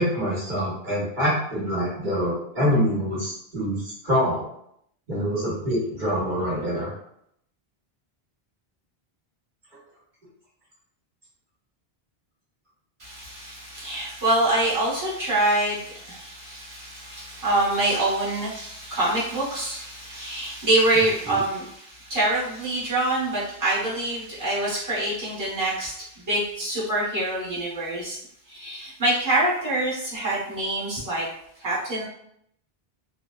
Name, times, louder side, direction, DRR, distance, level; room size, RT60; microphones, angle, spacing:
voice 1, 0.0-4.4 5.1-6.9, equal, 55° right, -7 dB, 1.0 m, -25 dB
voice 2, 13.0-28.2 28.5-31.2 31.6-32.1, right 1 dB, 20° right, -8 dB, 0.9 m, -25 dB
2.8 x 2.0 x 2.2 m, 0.72 s
omnidirectional pair, 1.0 m